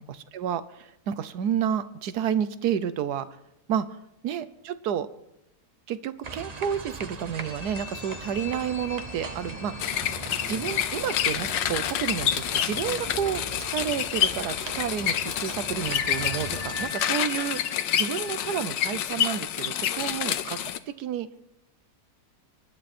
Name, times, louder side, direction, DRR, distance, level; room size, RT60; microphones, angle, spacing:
voice 1, 0.0-3.3 3.7-3.9 4.2-5.1 5.9-9.9 10.5-13.4 13.7-17.6 17.9-20.6 20.9-21.3, right 9 dB, 65° right, 14 dB, 1.3 m, -30 dB
sound 1, 6.2-16.9, right 3 dB, 30° right, 0.8 m, -40 dB
sound 2, 7.3-20.1, left 6 dB, 50° left, 1.9 m, -43 dB
sound 3, 9.8-20.8, left 10 dB, 85° left, 1.5 m, -28 dB
25.0 x 11.0 x 4.3 m, 0.88 s
omnidirectional pair, 1.9 m